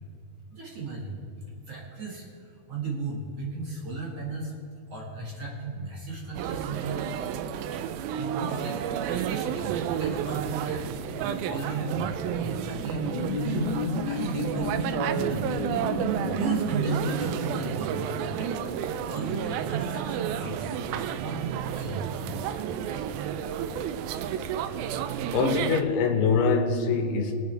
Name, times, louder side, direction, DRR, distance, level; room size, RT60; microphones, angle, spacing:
voice 1, 0.5-1.2 1.7-4.5 4.9-7.1 7.7-10.9 11.2-13.8 14.0-15.5 15.7-18.7 19.1-20.7 21.0-22.2, right 3 dB, 50° right, -3 dB, 2.3 m, -35 dB
sound 1, 6.3-25.8, right 9 dB, 80° right, 2.3 m, -31 dB
sound 2, 12.8-17.7, left 5 dB, 65° left, 2.0 m, -33 dB
voice 2, 25.3-27.3, left 5 dB, 85° left, 5 dB, 3.1 m, -24 dB
23.5 x 8.3 x 3.4 m, 2.7 s
omnidirectional pair, 4.5 m